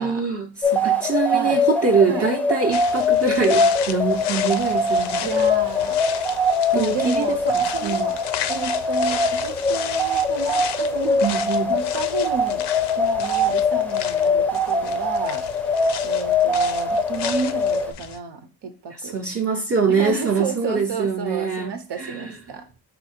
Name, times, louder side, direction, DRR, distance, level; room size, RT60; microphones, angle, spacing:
voice 1, 0.0-5.2 6.7-7.4 7.8-8.1 11.2-11.7 19.0-22.4, right 5 dB, 35° right, 0 dB, 0.7 m, -23 dB
sound 1, 0.6-17.9, left 2 dB, 5° left, 0.5 m, -22 dB
voice 2, 1.3-1.6 2.1-2.3 5.2-6.0 6.7-8.2 8.5-11.2 11.7-12.6 13.0-15.4 16.0-19.2 19.9-22.6, right 5 dB, 85° right, 7 dB, 0.9 m, -31 dB
sound 2, 2.7-18.2, left 10 dB, 80° left, 0.5 m, -34 dB
4.3 x 2.8 x 4.2 m, 0.32 s
wide cardioid pair, 100°, 40 cm